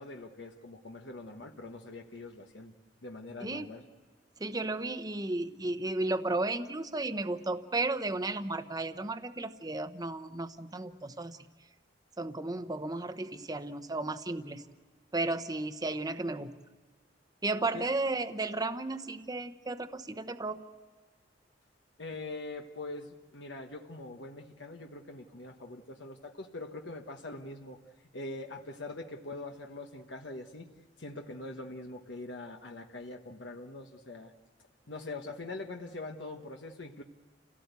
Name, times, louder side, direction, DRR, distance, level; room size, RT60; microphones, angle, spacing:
voice 1, 0.0-2.7 3.0-3.8 17.7-17.9 22.0-27.8 28.1-30.7 31.0-34.3 34.9-37.0, left 2 dB, 65° left, 3 dB, 1.3 m, -43 dB
voice 2, 4.4-11.4 12.2-14.6 15.1-16.5 17.4-20.6, right 2 dB, 20° right, 9 dB, 0.9 m, -34 dB
29.0 x 17.5 x 8.2 m, 1.4 s
head